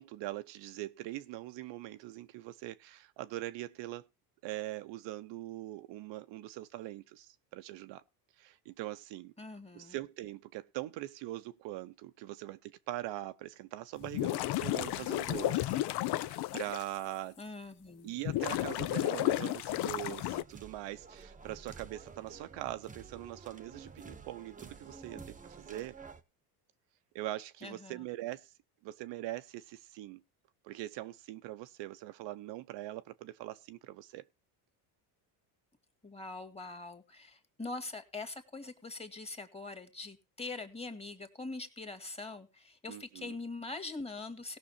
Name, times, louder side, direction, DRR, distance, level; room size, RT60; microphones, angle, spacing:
voice 1, 0.0-4.1 4.4-8.0 8.4-9.3 9.7-17.4 18.0-25.9 27.1-28.5 28.8-30.2 30.6-34.2 42.9-43.3, right 15 dB, 65° right, 0.8 m, -42 dB
voice 2, 9.4-10.0 17.4-18.1 27.6-28.1 36.0-44.6, left 3 dB, 10° left, 2.0 m, -43 dB
sound 1, 14.0-16.8 17.4-17.5 18.2-20.4, left 15 dB, 55° left, 0.7 m, -32 dB
sound 2, 20.3-26.2, right 5 dB, 15° right, 1.1 m, -51 dB
18.0 x 6.1 x 4.3 m
supercardioid pair, 100°, 48 cm